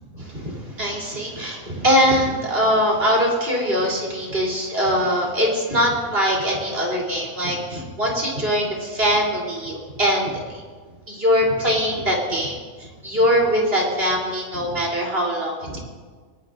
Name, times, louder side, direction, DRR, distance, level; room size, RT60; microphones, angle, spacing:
voice 1, 0.1-10.6 11.1-15.8, equal, 40° right, -2 dB, 4.0 m, -22 dB
24.0 x 19.0 x 2.6 m, 1.5 s
omnidirectional pair, 1.5 m